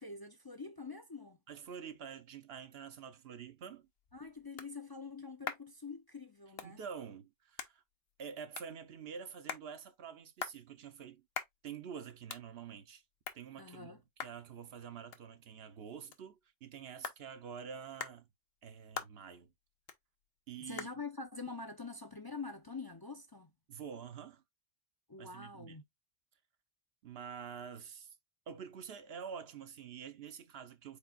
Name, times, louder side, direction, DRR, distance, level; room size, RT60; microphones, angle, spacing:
voice 1, 0.0-1.4 4.1-6.8 13.6-14.0 20.6-23.5 25.1-25.8, left 4 dB, 30° left, 0.5 m, -45 dB
voice 2, 1.5-3.9 6.6-7.8 8.2-11.3 11.6-13.0 13.3-18.3 18.6-19.5 20.5-20.9 23.7-24.4 25.2-25.8 27.0-28.2 28.5-31.0, right 7 dB, 75° right, 1.0 m, -47 dB
sound 1, 3.7-23.0, left 6 dB, 70° left, 1.0 m, -49 dB
5.2 x 4.2 x 2.3 m
omnidirectional pair, 1.1 m